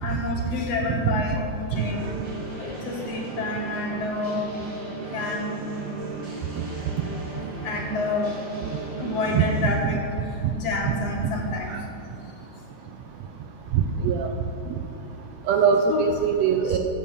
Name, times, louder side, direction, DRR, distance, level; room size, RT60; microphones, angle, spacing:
voice 1, 0.0-1.4 1.7-2.0 2.6-4.4 5.0-5.5 7.6-8.3 9.0-10.0 10.5-11.7 15.9-16.0, left 3 dB, 60° left, 0 dB, 2.1 m, -28 dB
sound 1, 1.7-9.7, right 3 dB, 25° right, 2.2 m, -35 dB
voice 2, 13.7-14.3 15.5-16.8, right 7 dB, 75° right, 4 dB, 1.6 m, -22 dB
13.0 x 5.5 x 7.1 m, 2.6 s
omnidirectional pair, 3.4 m